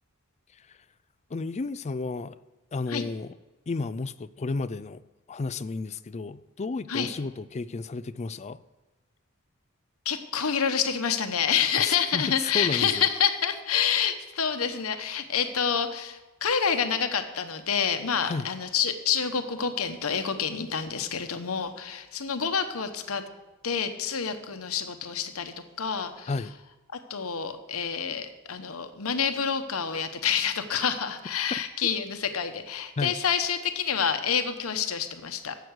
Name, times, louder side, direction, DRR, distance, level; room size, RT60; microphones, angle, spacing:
voice 1, 1.3-2.4 2.7-3.3 3.7-5.0 5.3-8.6 11.8-13.1 18.2-18.5 26.3-26.5 31.5-31.9 33.0-33.2, left 3 dB, 30° left, 14 dB, 0.4 m, -32 dB
voice 2, 10.0-23.2 23.6-26.3 27.1-35.6, left 7 dB, 85° left, 8 dB, 1.0 m, -28 dB
11.5 x 7.8 x 8.1 m, 1.1 s
head